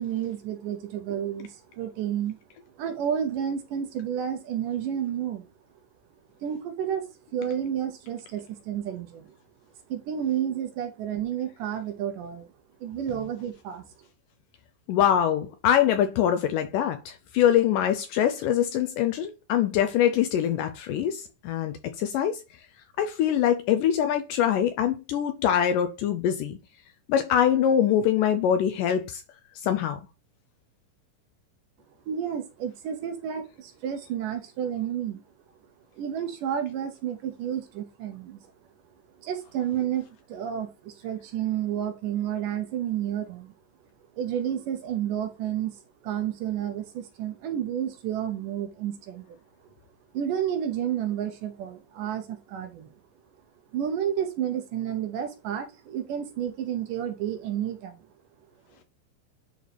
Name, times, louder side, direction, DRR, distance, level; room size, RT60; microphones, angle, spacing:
voice 1, 0.0-2.4 2.7-5.5 6.4-9.4 9.9-12.5 12.8-13.8 32.1-35.2 35.9-38.5 39.2-43.5 44.1-49.4 50.1-52.9 53.7-58.1, right 9 dB, 75° right, 2.1 m, -31 dB
voice 2, 14.9-22.4 23.0-26.6 27.1-29.2 29.6-30.0, left 9 dB, 80° left, 2.0 m, -24 dB
11.0 x 4.0 x 3.4 m
omnidirectional pair, 4.3 m